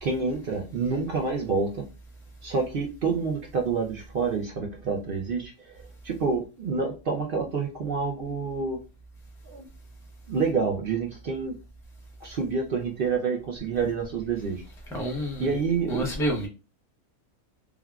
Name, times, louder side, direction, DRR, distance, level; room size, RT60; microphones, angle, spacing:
voice 1, 0.0-1.8 2.4-8.8 9.4-9.7 10.3-11.5 12.2-14.6 15.4-16.2, right 4 dB, 65° right, 0.5 m, -28 dB
voice 2, 14.9-15.6 15.9-16.5, equal, 5° left, 0.4 m, -28 dB
3.5 x 2.3 x 2.3 m
omnidirectional pair, 1.5 m